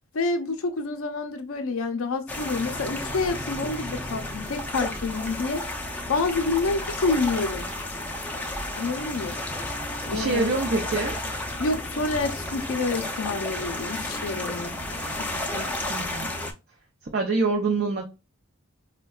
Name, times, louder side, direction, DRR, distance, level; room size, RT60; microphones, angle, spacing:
voice 1, 0.1-5.6 6.1-7.7 8.8-9.4 10.1-10.5 11.6-14.7 15.2-15.7, left 3 dB, 70° left, 0.5 m, -28 dB
sound 1, 2.3-16.5, left 1 dB, 5° left, 0.4 m, -32 dB
voice 2, 10.1-11.2 15.9-16.3 17.1-18.1, right 3 dB, 50° right, 0.5 m, -25 dB
4.4 x 2.2 x 2.3 m
head